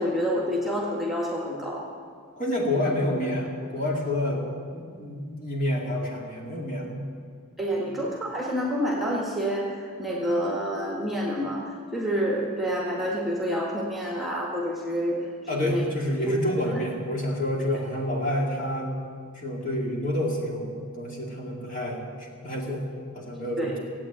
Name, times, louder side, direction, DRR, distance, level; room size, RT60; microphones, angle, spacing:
voice 1, 0.0-1.9 7.6-15.2 15.6-15.8 23.6-23.8, equal, ahead, -3 dB, 1.8 m, -28 dB
voice 2, 2.4-4.5 4.7-7.0 7.9-8.0 15.5-18.9 19.3-22.8 23.1-23.8, left 1 dB, 35° left, -1 dB, 2.5 m, -28 dB
17.0 x 8.8 x 8.9 m, 2.1 s
head